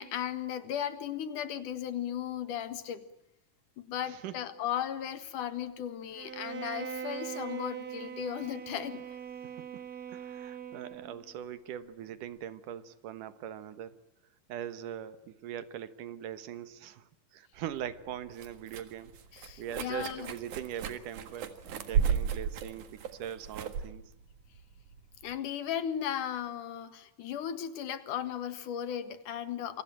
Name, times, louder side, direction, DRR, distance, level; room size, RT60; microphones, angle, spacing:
voice 1, 0.0-3.0 3.8-9.0 19.3-20.3 25.2-29.8, left 9 dB, 80° left, 12 dB, 3.2 m, -36 dB
voice 2, 4.0-4.5 9.4-9.8 10.1-14.0 14.5-19.1 19.6-24.0, right 10 dB, 90° right, 13 dB, 2.9 m, -41 dB
Bowed string instrument, 6.1-11.2, right 8 dB, 50° right, 1.1 m, -41 dB
sound 1, 17.6-25.4, right 7 dB, 75° right, 3.3 m, -35 dB
27.0 x 24.0 x 9.1 m, 0.80 s
omnidirectional pair, 3.6 m